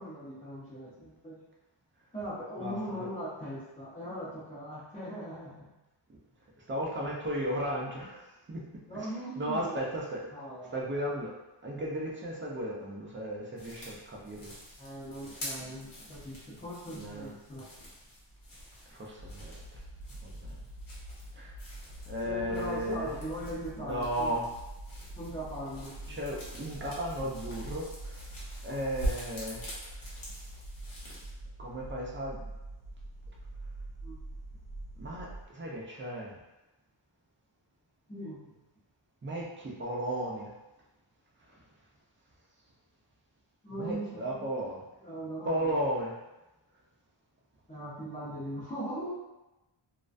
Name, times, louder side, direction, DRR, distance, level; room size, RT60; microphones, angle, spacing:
voice 1, 0.0-1.3 2.1-5.7 8.9-9.8 10.3-10.8 14.8-17.7 22.3-24.4 25.1-26.2 34.0-34.2 38.1-38.5 43.6-44.5 45.0-45.7 47.7-49.1, equal, 15° left, -11 dB, 0.6 m, -40 dB
voice 2, 2.6-3.1 6.1-6.2 6.7-8.6 8.9-9.1 9.4-10.2 10.7-11.3 11.6-14.5 16.9-17.3 18.9-19.8 20.2-20.5 21.4-21.5 22.1-23.1 23.8-24.5 26.1-28.3 28.6-29.9 31.6-32.4 35.0-36.3 39.2-40.5 43.7-44.8 45.4-46.1, equal, 25° right, -3 dB, 0.4 m, -35 dB
sound 1, 13.6-31.3, equal, 90° left, 1.0 m, -45 dB
sound 2, 19.2-35.4, right 1 dB, 80° right, 0.8 m, -45 dB
2.4 x 2.2 x 2.4 m, 1.0 s
wide cardioid pair, 145°, 48 cm